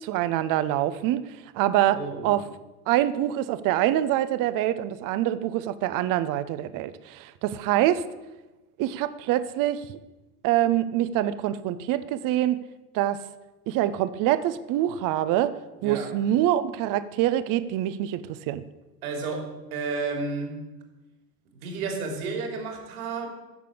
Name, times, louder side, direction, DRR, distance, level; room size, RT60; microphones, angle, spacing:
voice 1, 0.0-2.4 2.9-8.1 8.8-9.9 10.4-12.6 12.9-13.2 13.7-15.6 15.8-18.6, right 13 dB, 40° right, 14 dB, 0.9 m, -25 dB
voice 2, 1.9-2.4 15.8-16.1 19.0-20.7 21.5-23.3, right 4 dB, 65° right, 3 dB, 3.2 m, -32 dB
14.5 x 6.8 x 8.6 m, 1.1 s
figure-of-eight pair, 80°, 48 cm